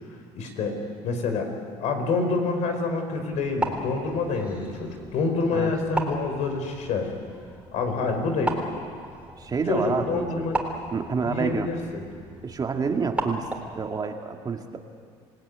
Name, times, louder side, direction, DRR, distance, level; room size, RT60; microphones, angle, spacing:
voice 1, 0.3-0.8 1.0-1.5 1.8-7.1 7.7-8.6 9.7-10.6 11.2-12.0, left 3 dB, 65° left, 5 dB, 4.8 m, -27 dB
sound 1, 3.3-13.9, right 1 dB, 10° right, 3.8 m, -36 dB
voice 2, 9.4-10.5 10.9-11.7 12.4-13.5 13.7-14.8, right 5 dB, 30° right, 4 dB, 2.0 m, -28 dB
27.5 x 17.0 x 9.6 m, 2.2 s
supercardioid pair, 100°, 13 cm